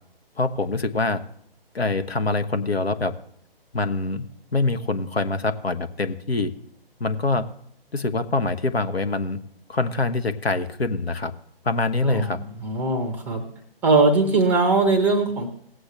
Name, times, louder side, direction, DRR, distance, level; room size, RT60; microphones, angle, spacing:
voice 1, 0.4-1.2 1.7-3.1 3.7-6.5 7.0-7.5 7.9-9.4 9.7-11.3 11.6-12.4, left 3 dB, 85° left, 9 dB, 1.0 m, -24 dB
voice 2, 12.0-13.4 13.8-15.5, right 3 dB, 5° right, 6 dB, 0.6 m, -21 dB
18.0 x 7.9 x 3.2 m, 0.69 s
figure-of-eight pair, 140°, 30 cm